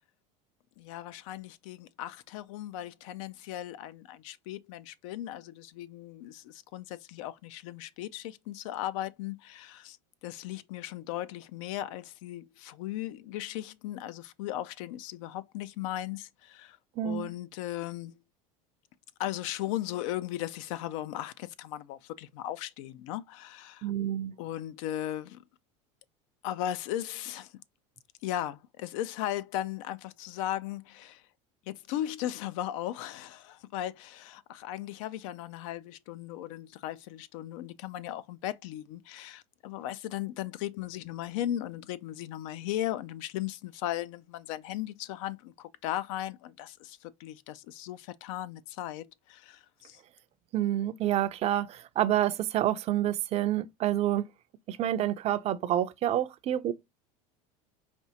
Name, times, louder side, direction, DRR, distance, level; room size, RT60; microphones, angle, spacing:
voice 1, 0.8-10.0 10.2-16.8 17.0-18.1 19.2-23.9 24.4-25.4 26.4-27.5 28.2-31.2 31.7-50.0, left 13 dB, 75° left, 0.4 m, -37 dB
voice 2, 17.0-17.3 23.8-24.3 50.5-54.3 54.7-56.7, right 12 dB, 40° right, 0.4 m, -28 dB
4.3 x 2.4 x 2.7 m
supercardioid pair, 110°, 17 cm